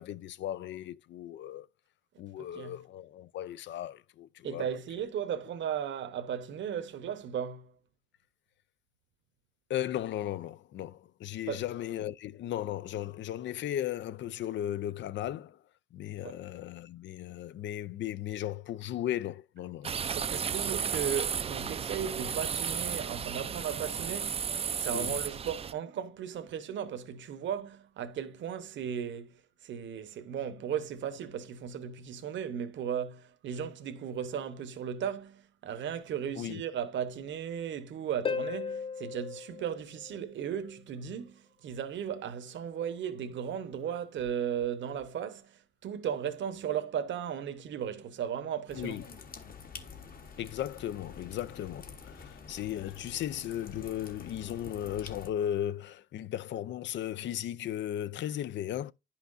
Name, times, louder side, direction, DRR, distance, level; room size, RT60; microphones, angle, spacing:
voice 1, 0.0-1.7 2.2-4.7 5.0-5.1 9.7-15.6 15.9-19.9 24.9-25.1 36.4-36.6 48.8-49.0 50.4-58.9, left 11 dB, 65° left, 0.5 m, -36 dB
voice 2, 2.4-2.8 4.4-7.7 11.5-11.6 16.2-16.4 20.1-29.3 29.6-49.0, right 8 dB, 70° right, 1.0 m, -36 dB
sound 1, 19.8-25.7, right 7 dB, 30° right, 0.4 m, -33 dB
Harp, 38.2-40.7 44.2-44.3, left 5 dB, 25° left, 0.7 m, -37 dB
sound 2, 48.7-55.3, left 5 dB, 45° left, 1.3 m, -48 dB
10.0 x 5.7 x 2.6 m
cardioid pair, 90°, 20 cm